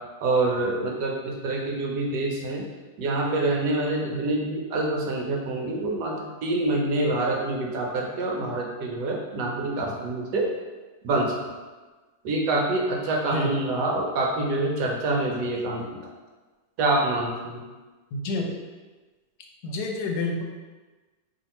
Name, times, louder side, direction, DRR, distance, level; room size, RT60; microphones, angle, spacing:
voice 1, 0.2-2.6 3.0-10.5 11.0-11.4 12.2-16.0 16.8-17.6, right 2 dB, 80° right, 0 dB, 1.2 m, -26 dB
voice 2, 18.1-18.6 19.6-20.4, left 2 dB, 70° left, 1 dB, 1.1 m, -29 dB
2.8 x 2.8 x 4.2 m, 1.3 s
omnidirectional pair, 1.8 m